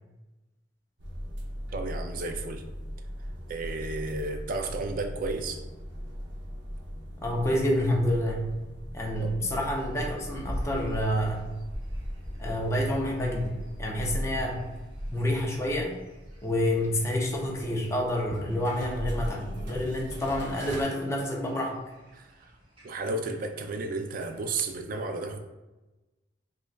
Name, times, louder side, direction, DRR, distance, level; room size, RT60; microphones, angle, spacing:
sound 1, 1.0-20.8, equal, 80° right, 0.8 m, -39 dB
voice 1, 1.7-2.6 3.5-5.7 9.2-9.3 22.1-22.5 22.8-25.4, right 3 dB, 45° right, 6 dB, 0.3 m, -33 dB
voice 2, 7.2-8.5 8.9-11.4 12.4-14.7 15.1-16.0 16.4-21.7, left 1 dB, 15° left, -1 dB, 0.5 m, -28 dB
sound 2, 9.7-24.9, equal, 30° right, 0.8 m, -45 dB
5.1 x 2.3 x 2.3 m, 1.1 s
head